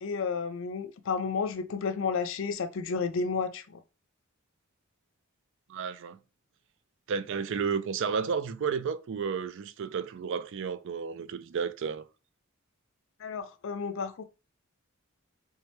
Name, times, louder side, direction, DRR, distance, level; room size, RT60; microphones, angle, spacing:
voice 1, 0.0-3.8 13.2-14.2, left 5 dB, 60° left, 0.5 m, -32 dB
voice 2, 5.7-6.2 7.1-12.0, right 6 dB, 60° right, 0.4 m, -32 dB
3.3 x 3.2 x 3.1 m
head